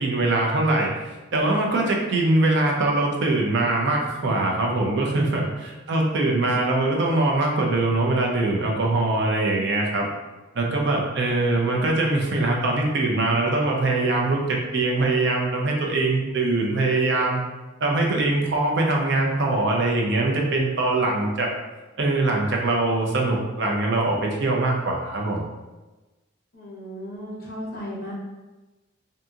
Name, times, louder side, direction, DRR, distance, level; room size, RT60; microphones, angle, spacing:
voice 1, 0.0-10.1 10.5-17.4 17.8-21.5 22.0-25.4, right 2 dB, 55° right, -1 dB, 0.5 m, -22 dB
voice 2, 11.2-12.0 26.5-28.1, equal, 45° left, -5 dB, 0.8 m, -37 dB
2.7 x 2.7 x 2.3 m, 1.1 s
head